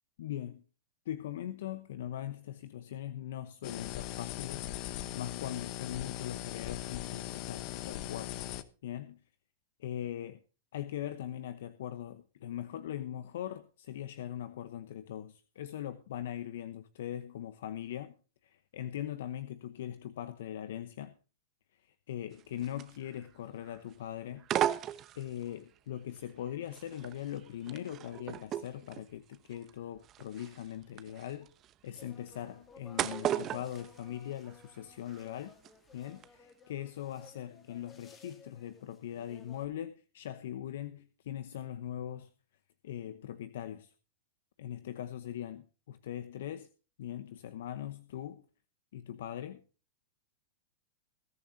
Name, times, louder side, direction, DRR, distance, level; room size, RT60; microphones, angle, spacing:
voice 1, 0.2-0.6 1.1-4.7 5.1-8.4 8.8-9.2 9.8-10.4 10.7-18.1 18.4-21.1 21.8-24.5 25.1-31.5 31.8-35.5 35.9-42.3 42.8-43.9 44.6-46.7 47.0-48.5 48.9-49.6, left 11 dB, 70° left, 0.9 m, -41 dB
sound 1, 3.6-8.6, left 14 dB, 45° left, 1.1 m, -40 dB
sound 2, 22.3-23.4 23.6-24.0 24.4-25.6 26.2-34.8 35.1-35.7 36.1-36.2, right 11 dB, 30° right, 0.9 m, -37 dB
sound 3, 31.9-39.7, left 4 dB, 20° left, 2.3 m, -57 dB
20.5 x 10.5 x 2.8 m
hypercardioid pair, 130°, 0 cm